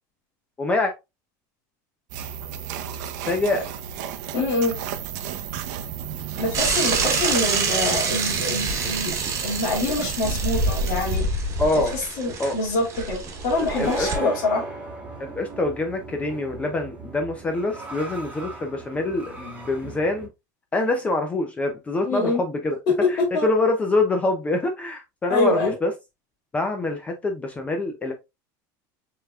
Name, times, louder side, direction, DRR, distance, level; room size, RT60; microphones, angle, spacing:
voice 1, 0.6-0.9 3.2-3.6 11.6-11.9 12.4-12.6 13.6-14.3 15.2-20.3 20.7-22.8 23.1-25.9 26.5-28.1, left 2 dB, 15° left, 0.4 m, -25 dB
sound 1, 2.1-11.2, right 9 dB, 75° right, 0.6 m, -33 dB
voice 2, 4.3-4.8 6.4-9.1 9.4-11.3 11.9-14.6 22.0-22.4 23.0-23.1 23.3-23.5 25.3-25.7, left 2 dB, 50° left, 2.3 m, -25 dB
Bicycle / Mechanisms, 6.5-14.1, right 3 dB, 30° right, 1.2 m, -26 dB
sound 2, 10.1-20.3, right 2 dB, 15° right, 1.2 m, -38 dB
5.6 x 3.4 x 2.3 m
cardioid pair, 160°, 10 cm